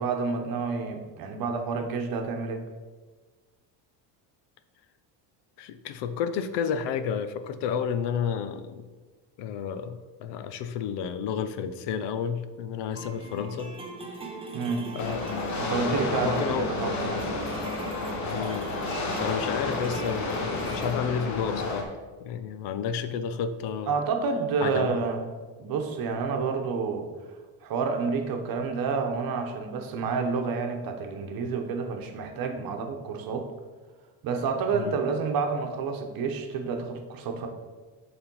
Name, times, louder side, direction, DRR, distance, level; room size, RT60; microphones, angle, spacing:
voice 1, 0.0-2.6 14.5-14.9 15.6-17.4 23.9-25.2 25.6-27.1 27.6-33.5 34.2-37.5, right 5 dB, 50° right, 4 dB, 1.0 m, -29 dB
voice 2, 5.6-8.8 9.4-13.7 14.9-15.4 15.9-16.7 18.3-18.7 19.2-21.9 22.2-24.0 24.6-25.0 34.7-35.0, left 7 dB, 65° left, 11 dB, 0.6 m, -31 dB
sound 1, 12.9-20.9, right 3 dB, 15° right, 0.8 m, -40 dB
sound 2, 15.0-21.8, left 3 dB, 40° left, 1.1 m, -31 dB
7.2 x 3.5 x 5.3 m, 1.4 s
cardioid pair, 140°, 44 cm